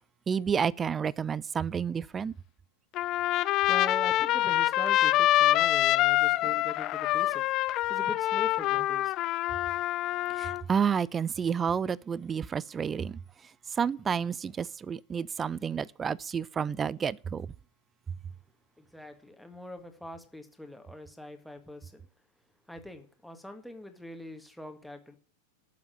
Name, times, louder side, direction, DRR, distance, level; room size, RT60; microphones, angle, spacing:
voice 1, 0.3-2.3 10.4-13.2 13.8-17.5, right 7 dB, 20° right, 0.5 m, -30 dB
Trumpet, 2.9-10.6, left 15 dB, 35° left, 0.7 m, -26 dB
voice 2, 3.7-7.5 7.9-9.1 18.8-22.0 22.7-25.2, left 1 dB, ahead, 1.9 m, -42 dB
12.5 x 7.2 x 8.8 m
figure-of-eight pair, 90°, 0 cm